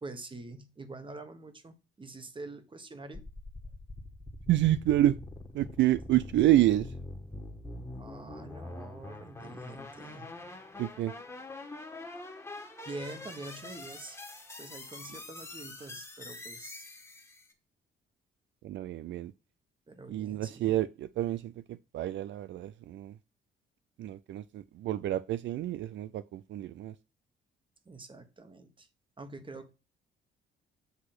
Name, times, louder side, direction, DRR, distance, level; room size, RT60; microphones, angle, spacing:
voice 1, 0.0-3.3 6.6-6.7 8.0-10.3 12.8-14.2 14.6-16.9 19.9-20.8 27.8-28.9 29.2-29.7, right 2 dB, 25° right, 1.3 m, -45 dB
sound 1, 3.1-17.5, left 2 dB, 15° left, 1.6 m, -44 dB
voice 2, 4.5-5.2 5.5-6.9 10.8-11.1 18.6-19.3 20.1-21.5 21.9-23.1 24.0-26.9, right 14 dB, 70° right, 0.4 m, -28 dB
8.2 x 3.1 x 6.0 m
cardioid pair, 90°, 20 cm